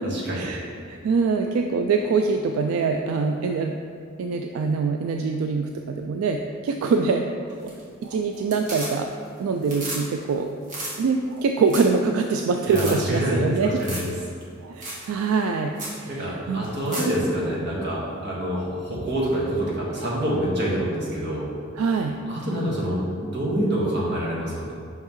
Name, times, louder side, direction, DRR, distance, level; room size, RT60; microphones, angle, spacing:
voice 1, 0.1-0.5 12.7-14.1 16.1-21.5 22.3-24.7, right 1 dB, 55° right, -5 dB, 1.4 m, -26 dB
voice 2, 0.9-3.7 4.2-7.3 7.6-7.7 8.0-9.1 9.4-10.5 11.0-13.7 14.6-15.7 16.0-16.7 21.8-22.2, right 4 dB, 80° right, 4 dB, 0.3 m, -24 dB
sound 1, 7.5-8.0 8.3-9.3 9.6-10.0 10.3-10.4 10.6-10.9 11.4-11.5 11.7-12.0 12.3-12.4 12.7-12.9 13.8-14.1 14.4-14.5 14.8-15.0 15.4-15.5 15.8-16.0 16.6-17.1 19.3-19.4, right 1 dB, 40° right, 1.5 m, -33 dB
5.6 x 5.5 x 3.1 m, 2.4 s
head